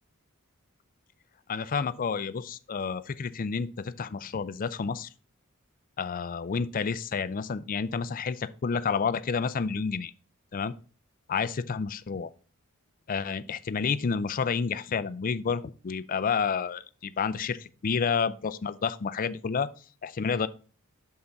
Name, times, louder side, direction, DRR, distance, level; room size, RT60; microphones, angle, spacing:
voice 1, 1.5-5.1 6.0-10.1 10.5-10.7 11.3-12.3 13.1-19.7 20.0-20.5, left 5 dB, 40° left, 0.4 m, -30 dB
6.6 x 5.7 x 3.9 m
head